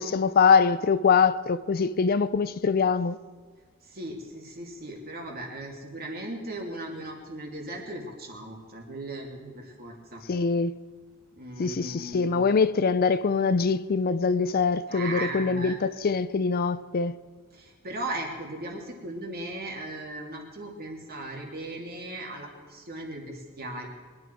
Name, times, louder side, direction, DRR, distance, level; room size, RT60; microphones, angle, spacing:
voice 1, 0.0-3.2 10.3-10.8 11.6-17.1, left 5 dB, 45° left, 0.4 m, -23 dB
voice 2, 3.8-10.2 11.4-12.4 14.9-15.8 17.5-23.9, right 1 dB, 45° right, 2.8 m, -37 dB
22.5 x 11.0 x 4.6 m
head